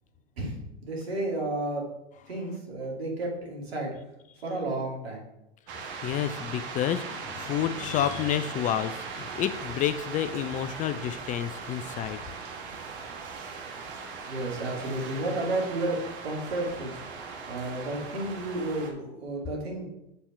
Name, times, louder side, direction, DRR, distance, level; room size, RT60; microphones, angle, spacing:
voice 1, 0.4-1.8 2.3-3.9 4.4-5.2 14.3-16.0 16.2-16.9 17.5-19.9, right 2 dB, 80° right, -1 dB, 2.6 m, -32 dB
sound 1, 5.7-18.9, right 5 dB, 60° right, 1.5 m, -39 dB
voice 2, 6.0-12.2, left 10 dB, 25° left, 12 dB, 0.3 m, -29 dB
7.0 x 4.3 x 5.4 m, 0.88 s
hypercardioid pair, 90°, 31 cm